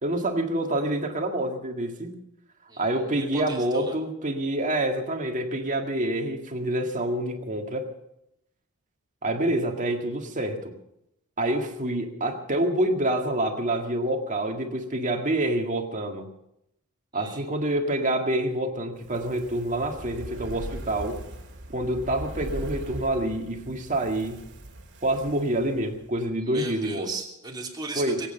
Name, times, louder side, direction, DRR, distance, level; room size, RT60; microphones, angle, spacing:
voice 1, 0.0-2.1 2.8-7.9 9.2-10.7 11.4-16.3 17.1-21.2 21.7-24.4 25.0-27.1 28.0-28.3, right 1 dB, 35° right, 4 dB, 1.9 m, -27 dB
voice 2, 2.7-3.9 17.1-17.4 26.4-28.3, right 3 dB, 20° right, 0 dB, 2.9 m, -37 dB
Fire, 18.9-26.3 26.6-26.7, right 1 dB, 55° right, 2.2 m, -40 dB
22.5 x 9.0 x 6.7 m, 0.82 s
head